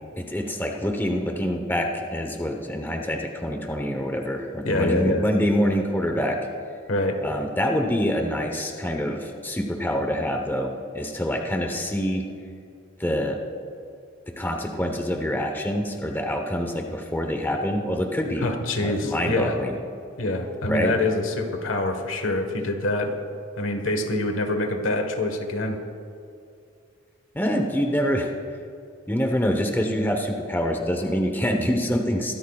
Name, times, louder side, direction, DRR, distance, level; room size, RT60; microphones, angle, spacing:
voice 1, 0.2-6.4 7.2-12.2 13.0-13.4 14.3-18.5 18.8-19.8 20.7-20.9 27.3-28.3 29.1-32.3, equal, 10° left, 2 dB, 1.0 m, -26 dB
voice 2, 4.6-5.2 6.9-7.2 18.4-19.5 20.2-23.1 23.6-25.8, left 2 dB, 80° left, 5 dB, 1.4 m, -25 dB
23.0 x 13.0 x 2.4 m, 2.4 s
head